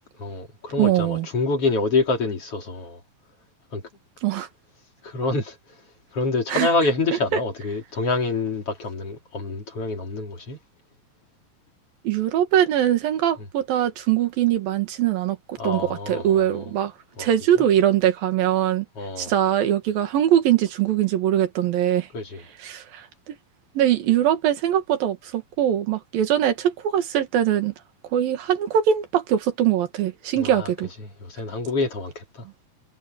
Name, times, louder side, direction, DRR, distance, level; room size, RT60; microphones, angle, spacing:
voice 1, 0.2-3.0 3.7-3.8 5.0-5.6 6.1-10.6 15.6-16.7 17.2-17.3 19.0-19.3 22.1-22.5 30.4-30.7 31.0-32.4, left 3 dB, 45° left, 3.8 m, -26 dB
voice 2, 0.8-1.3 4.2-4.5 6.5-6.7 12.1-16.9 17.2-18.9 19.2-22.1 22.6-23.4 23.8-27.7 28.1-30.9, right 11 dB, 90° right, 3.6 m, -22 dB
omnidirectional pair, 4.0 m